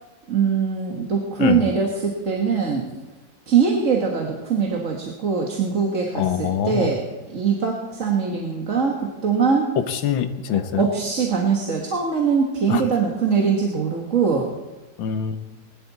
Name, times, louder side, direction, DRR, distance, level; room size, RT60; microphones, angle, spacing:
voice 1, 0.3-2.9 3.5-9.7 10.8-14.5, right 5 dB, 45° right, 0 dB, 1.8 m, -22 dB
voice 2, 6.1-6.9 9.9-10.8 12.7-12.8 15.0-15.4, left 8 dB, 85° left, 8 dB, 1.7 m, -24 dB
20.5 x 12.0 x 4.1 m, 1.2 s
omnidirectional pair, 2.1 m